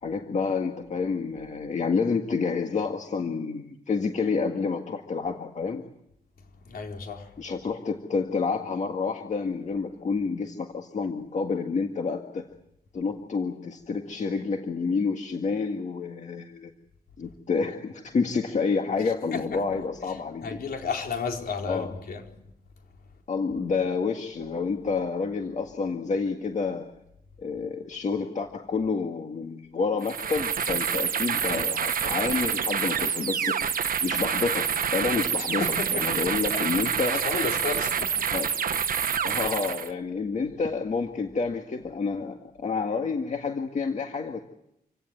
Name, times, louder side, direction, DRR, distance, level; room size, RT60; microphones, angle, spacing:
voice 1, 0.0-5.8 7.4-12.5 12.9-16.7 17.2-20.6 21.7-21.9 23.3-26.9 27.4-33.6 34.0-37.3 38.3-38.5 39.2-44.4, left 4 dB, 50° left, 1.8 m, -29 dB
voice 2, 6.6-7.4 19.3-19.8 20.4-22.2 35.4-36.1 36.5-36.6 37.1-38.3 39.2-39.4, left 5 dB, 75° left, 4.1 m, -33 dB
sound 1, 30.0-39.9, right 7 dB, 65° right, 1.0 m, -27 dB
27.0 x 17.0 x 9.7 m
wide cardioid pair, 170°, 16 cm